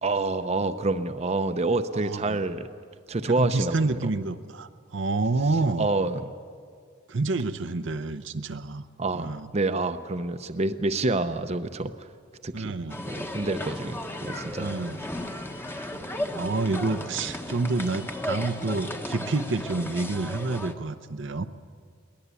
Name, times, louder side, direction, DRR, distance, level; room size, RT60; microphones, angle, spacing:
voice 1, 0.0-2.7 3.1-4.1 5.8-6.3 9.0-11.9 12.4-12.8 13.1-14.7, right 2 dB, 35° right, 9 dB, 0.7 m, -27 dB
voice 2, 1.9-2.4 3.3-5.9 7.1-8.8 9.1-9.5 12.5-13.0 14.6-15.1 16.3-21.5, right 3 dB, 70° right, 9 dB, 0.8 m, -28 dB
sound 1, 12.9-20.7, left 1 dB, 10° left, 1.1 m, -35 dB
22.0 x 18.5 x 8.4 m, 2.1 s
head